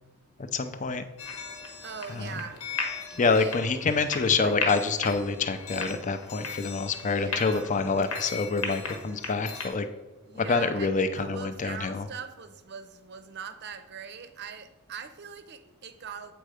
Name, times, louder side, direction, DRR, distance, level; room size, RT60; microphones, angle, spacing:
voice 1, 0.4-1.0 2.1-2.4 3.2-9.9 10.4-12.1, left 4 dB, 35° left, 9 dB, 0.5 m, -27 dB
sound 1, 1.2-9.7, left 4 dB, 85° left, 1.3 m, -37 dB
voice 2, 1.8-2.6 3.1-3.6 4.4-4.7 7.1-7.7 10.2-16.3, right 6 dB, 50° right, 10 dB, 0.6 m, -41 dB
7.8 x 4.4 x 4.9 m, 1.2 s
head